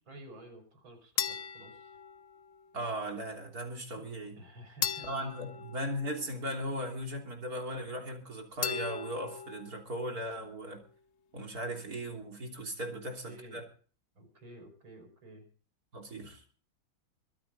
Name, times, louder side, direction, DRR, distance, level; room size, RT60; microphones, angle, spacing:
voice 1, 0.1-2.0 4.0-4.1 4.4-5.1 12.9-13.0 13.2-13.6 14.1-15.4, equal, 90° right, 5 dB, 5.8 m, -51 dB
sound 1, 1.2-2.7 4.8-6.7 8.6-9.7, left 7 dB, 55° left, 0.7 m, -38 dB
voice 2, 2.7-4.4 5.0-10.8 11.3-13.6 15.9-16.4, equal, 50° right, 2 dB, 3.8 m, -38 dB
23.5 x 9.3 x 4.3 m, 0.41 s
omnidirectional pair, 2.1 m